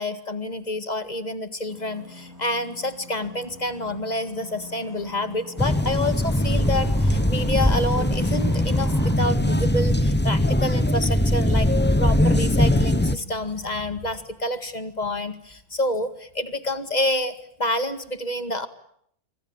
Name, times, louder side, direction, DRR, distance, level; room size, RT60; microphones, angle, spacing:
voice 1, 0.0-11.7 12.0-17.3 17.6-18.7, left 1 dB, 25° left, 10 dB, 2.0 m, -28 dB
sound 1, 1.7-9.2, left 1 dB, 10° right, 6.6 m, -43 dB
sound 2, 5.6-13.2, left 1 dB, 10° left, 0.8 m, -21 dB
26.5 x 24.5 x 8.8 m, 0.70 s
omnidirectional pair, 1.6 m